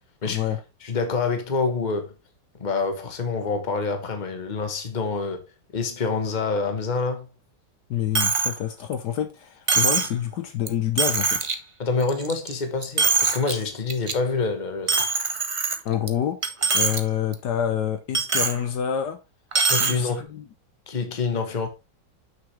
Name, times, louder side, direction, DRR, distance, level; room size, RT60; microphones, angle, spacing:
voice 1, 0.3-0.6 7.9-11.5 15.8-16.4 16.7-19.2 19.8-20.4, left 9 dB, 70° left, 1.3 m, -27 dB
voice 2, 0.8-2.1 2.6-5.4 5.7-7.3 11.8-15.0 19.7-20.3 20.9-21.7, left 4 dB, 30° left, 1.2 m, -26 dB
Coin (dropping), 8.1-8.6 8.9-9.0 9.7-10.1 10.7-10.8 11.0-11.5 12.0-12.5 12.8-13.5 13.9-14.1 14.9-16.1 16.4-17.0 17.3-17.4 18.1-18.6 19.5-20.0, right 4 dB, 55° right, 0.3 m, -22 dB
7.5 x 6.2 x 3.3 m
omnidirectional pair, 1.9 m